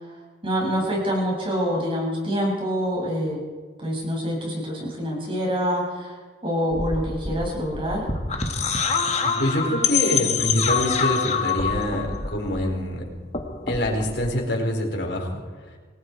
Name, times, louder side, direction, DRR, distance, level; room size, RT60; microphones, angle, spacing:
voice 1, 0.4-3.4 3.8-6.2 6.4-8.1, equal, 30° right, -1 dB, 7.2 m, -26 dB
sound 1, 6.7-13.0 13.2-14.3, left 5 dB, 35° left, 1.9 m, -26 dB
voice 2, 9.2-13.0 13.7-15.4, equal, 60° left, 0 dB, 4.8 m, -25 dB
27.5 x 19.5 x 4.8 m, 1.4 s
head